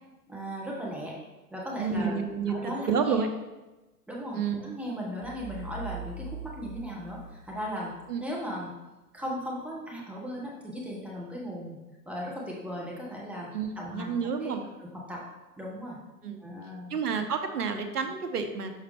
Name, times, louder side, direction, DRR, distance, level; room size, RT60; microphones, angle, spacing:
voice 1, 0.3-1.1 1.5-2.2 2.5-3.2 4.1-7.9 8.2-8.7 9.1-13.5 13.8-14.1 14.4-15.2 15.6-16.0 16.4-16.9, equal, 5° right, -4 dB, 0.9 m, -37 dB
voice 2, 1.8-3.3 4.3-4.6 8.1-8.2 13.5-14.6 16.2-16.4 16.9-18.7, right 6 dB, 75° right, 7 dB, 1.0 m, -30 dB
sound 1, 5.2-8.1, right 3 dB, 20° right, 0.5 m, -41 dB
6.5 x 4.8 x 3.4 m, 1.1 s
figure-of-eight pair, 115°, 48 cm